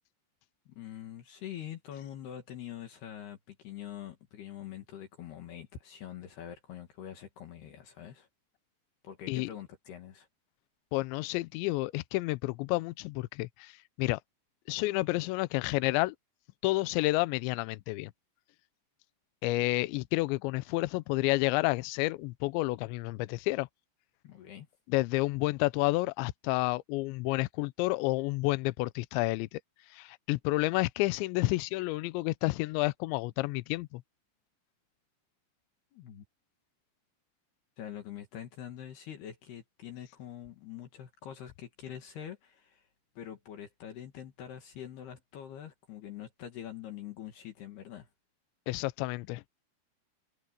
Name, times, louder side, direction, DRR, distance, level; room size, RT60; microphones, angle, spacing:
voice 1, 0.7-8.3 9.0-10.3 24.2-24.7 35.9-36.2 37.8-42.9 43.2-48.1, left 10 dB, 60° left, 3.5 m, -44 dB
voice 2, 10.9-13.7 14.0-14.2 14.7-16.2 16.6-18.1 19.4-23.7 24.9-29.6 29.9-34.0 48.7-49.4, left 21 dB, 85° left, 2.7 m, -30 dB
omnidirectional pair, 5.7 m